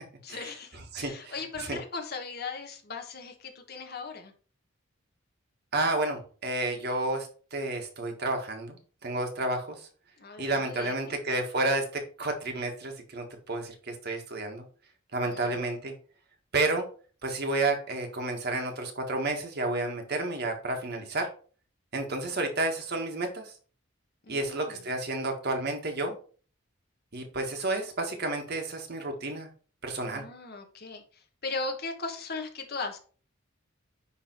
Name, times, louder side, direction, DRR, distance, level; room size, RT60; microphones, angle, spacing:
voice 1, 0.2-4.3 10.2-10.9 15.3-15.5 24.2-24.8 30.1-33.0, left 4 dB, 50° left, 4 dB, 1.5 m, -38 dB
voice 2, 0.9-1.8 5.7-9.9 10.4-14.6 15.1-15.9 16.5-16.9 17.2-21.3 21.9-23.5 24.3-26.1 27.1-29.5 29.8-30.2, right 2 dB, 50° right, 3 dB, 1.6 m, -31 dB
10.0 x 3.4 x 4.5 m, 0.41 s
head